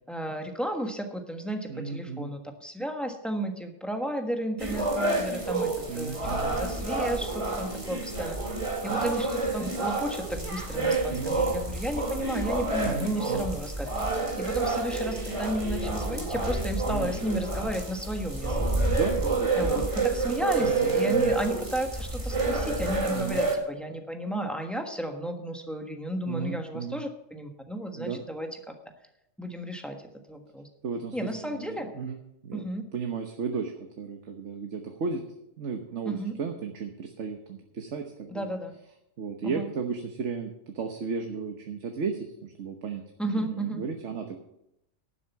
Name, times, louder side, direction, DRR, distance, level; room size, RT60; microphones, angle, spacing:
voice 1, 0.1-8.4 8.8-18.9 19.5-28.7 29.4-30.0 30.3-30.7 31.1-31.9 32.5-32.8 36.0-36.4 38.3-38.7 39.4-39.7 43.2-43.8, right 1 dB, ahead, 4 dB, 1.3 m, -33 dB
voice 2, 1.7-2.3 5.9-6.5 8.9-9.1 11.1-11.4 12.8-13.5 16.9-17.1 18.9-19.9 20.6-21.3 23.1-23.4 26.3-27.0 28.0-28.2 30.8-32.2 32.4-32.6 32.9-33.7 34.0-35.2 35.6-38.5 39.2-43.0 43.4-44.4, right 5 dB, 75° right, 4 dB, 1.4 m, -34 dB
sound 1, 4.6-23.5, right 2 dB, 25° right, 2.1 m, -29 dB
11.5 x 7.4 x 7.1 m, 0.82 s
omnidirectional pair, 1.2 m